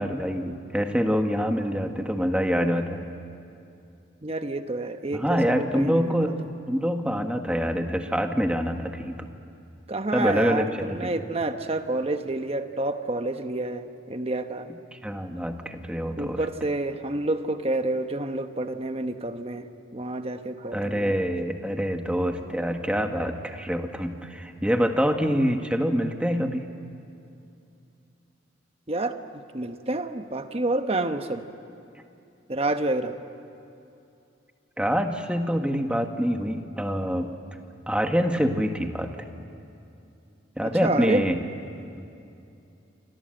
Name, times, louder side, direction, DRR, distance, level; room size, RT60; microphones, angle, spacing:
voice 1, 0.0-3.0 5.1-6.4 6.7-9.3 10.1-11.1 14.9-16.4 20.7-26.7 34.8-37.3 37.9-39.1 40.6-41.4 42.0-42.1, equal, 5° right, 5 dB, 1.5 m, -26 dB
voice 2, 4.2-6.3 9.9-14.7 16.2-19.7 19.9-21.2 28.9-31.4 32.5-33.1 40.6-41.3, right 2 dB, 30° right, 7 dB, 1.1 m, -29 dB
28.5 x 26.0 x 7.8 m, 2.7 s
head